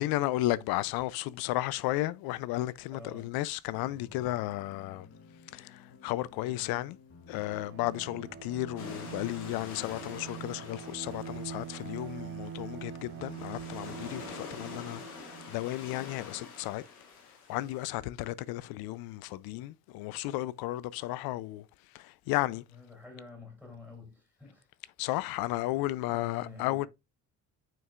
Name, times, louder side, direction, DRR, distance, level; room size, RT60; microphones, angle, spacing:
voice 1, 0.0-5.1 5.5-5.7 6.0-7.0 7.3-15.0 15.5-16.8 17.5-21.6 21.9-22.6 25.0-26.9, left 16 dB, 55° left, 0.5 m, -33 dB
voice 2, 2.9-3.3 22.5-24.7 25.4-26.9, left 3 dB, 5° left, 3.6 m, -49 dB
sound 1, 3.7-11.3, left 4 dB, 35° left, 1.2 m, -55 dB
Bowed string instrument, 7.3-15.8, right 7 dB, 30° right, 0.5 m, -44 dB
sound 2, 8.8-17.9, left 5 dB, 75° left, 1.5 m, -47 dB
9.1 x 4.5 x 2.4 m
figure-of-eight pair, 50°, 44 cm